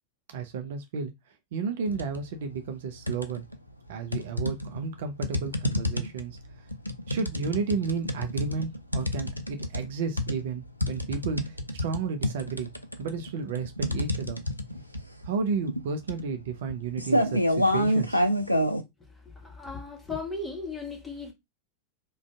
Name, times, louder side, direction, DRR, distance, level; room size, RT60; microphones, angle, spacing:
voice 1, 0.3-1.1 1.5-3.5 3.9-6.7 7.1-12.7 13.0-14.4 15.2-18.6, right 5 dB, 55° right, 0.4 m, -32 dB
sound 1, 1.9-2.2 2.6-3.6 4.1-18.8, equal, 90° left, 0.4 m, -28 dB
voice 2, 19.4-21.3, left 3 dB, 10° left, 1.1 m, -36 dB
2.5 x 2.3 x 3.4 m
figure-of-eight pair, 90°, 0 cm